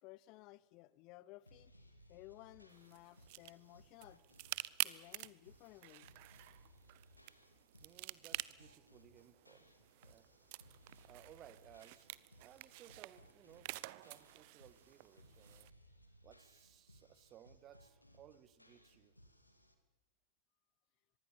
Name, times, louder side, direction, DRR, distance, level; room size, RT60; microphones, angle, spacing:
voice 1, 0.0-1.7 2.1-4.2 4.8-6.1, left 19 dB, 40° left, 20 dB, 0.7 m, -57 dB
sound 1, 1.5-19.7, equal, 85° left, 2.6 m, -65 dB
bark tree, 2.7-15.7, right 21 dB, 50° right, 0.7 m, -49 dB
voice 2, 7.8-10.3 11.1-12.1 12.4-15.7 16.2-19.1, right 11 dB, 30° right, 14 dB, 1.6 m, -61 dB
24.5 x 21.0 x 7.2 m, 1.1 s
figure-of-eight pair, 90°, 0 cm